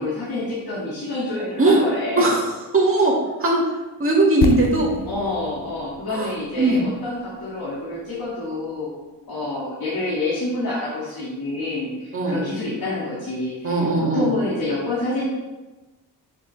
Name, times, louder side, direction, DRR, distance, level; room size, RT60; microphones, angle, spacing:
voice 1, 0.0-2.3 5.0-9.0 9.3-15.2, left 2 dB, 60° left, -9 dB, 2.4 m, -28 dB
voice 2, 2.7-3.1 3.4-3.6 4.0-4.9 6.1-6.3 6.6-6.8 12.1-12.4 13.6-14.3, right 2 dB, 30° right, -4 dB, 2.3 m, -18 dB
sound 1, 4.4-8.3 8.6-8.7, left 6 dB, 85° left, 0.8 m, -30 dB
6.6 x 6.4 x 3.5 m, 1.1 s
cardioid pair, 80°, 40 cm